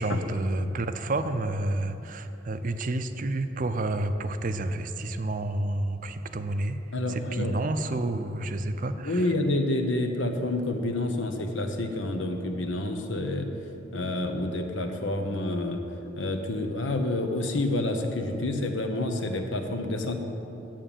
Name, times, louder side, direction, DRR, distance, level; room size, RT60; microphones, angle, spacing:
voice 1, 0.0-6.8 7.1-9.3, right 2 dB, 45° right, 9 dB, 0.5 m, -29 dB
voice 2, 6.9-7.5 9.0-13.5 13.9-15.8 16.2-20.1, left 2 dB, 80° left, 5 dB, 1.1 m, -28 dB
9.0 x 7.6 x 8.9 m, 3.0 s
head